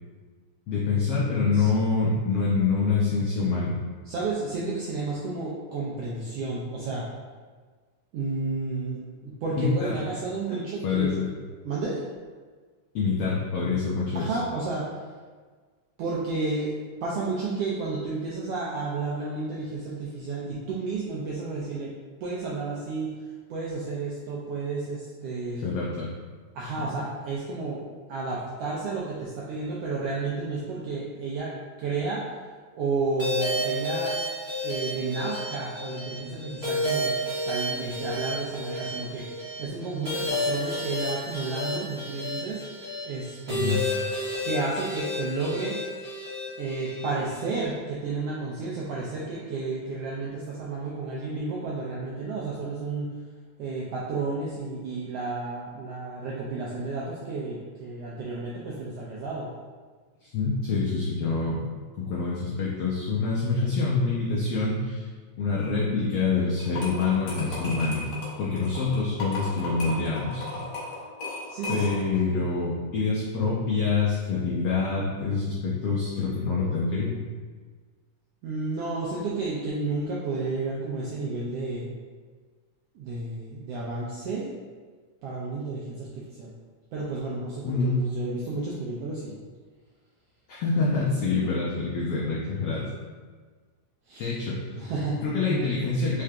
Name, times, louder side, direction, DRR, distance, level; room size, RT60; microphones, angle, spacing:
voice 1, 0.7-3.7 9.6-9.9 10.8-11.3 12.9-14.4 25.6-26.1 26.8-26.9 43.5-43.8 60.2-61.6 62.0-65.1 65.4-68.0 68.4-70.5 71.7-77.1 87.6-88.0 90.5-92.9 94.2-94.9 95.2-96.2, left 4 dB, 90° left, -5 dB, 1.2 m, -26 dB
voice 2, 4.0-7.1 8.1-9.0 9.2-11.2 11.6-12.0 14.1-14.9 16.0-16.7 17.0-21.9 22.2-23.1 23.5-25.7 26.5-27.8 28.1-31.5 31.8-32.2 32.7-34.1 34.6-39.3 39.6-42.6 43.0-43.9 44.4-45.9 46.6-53.1 53.6-59.5 71.5-71.9 78.4-81.9 82.9-84.4 85.2-86.5 86.9-89.4 94.1-94.3 94.7-95.2, right 3 dB, 85° right, -6 dB, 1.4 m, -31 dB
sound 1, 33.2-47.6, left 1 dB, 35° right, 0.7 m, -31 dB
sound 2, 66.6-72.2, left 2 dB, 70° left, 2.1 m, -36 dB
4.9 x 3.6 x 2.2 m, 1.5 s
omnidirectional pair, 3.3 m